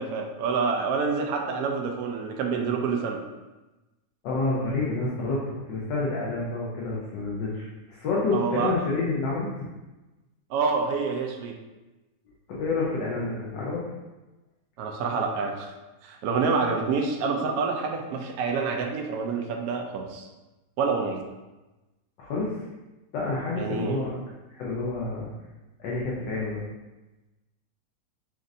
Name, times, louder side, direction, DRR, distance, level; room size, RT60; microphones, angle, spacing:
voice 1, 0.0-3.2 8.3-8.7 10.5-11.6 14.8-15.7 16.0-20.3 20.8-21.2 23.6-24.0, right 5 dB, 70° right, 2 dB, 1.0 m, -27 dB
voice 2, 4.2-5.4 5.7-9.6 12.5-13.8 22.2-22.6 23.1-24.2 24.5-25.3 25.8-26.6, left 3 dB, 85° left, -6 dB, 1.5 m, -28 dB
6.2 x 2.5 x 2.6 m, 1.1 s
omnidirectional pair, 1.9 m